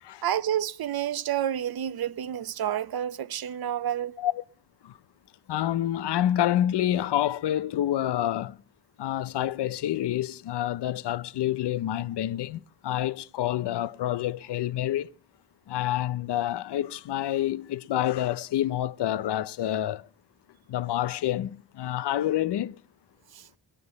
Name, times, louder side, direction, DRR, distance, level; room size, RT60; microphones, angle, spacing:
voice 1, 0.2-4.2 23.3-23.5, right 10 dB, 65° right, 0.7 m, -29 dB
voice 2, 5.5-8.5 9.0-15.1 15.7-20.1 20.7-22.8, left 12 dB, 80° left, 0.6 m, -28 dB
18.5 x 12.0 x 5.2 m
cardioid pair, 80°, 40 cm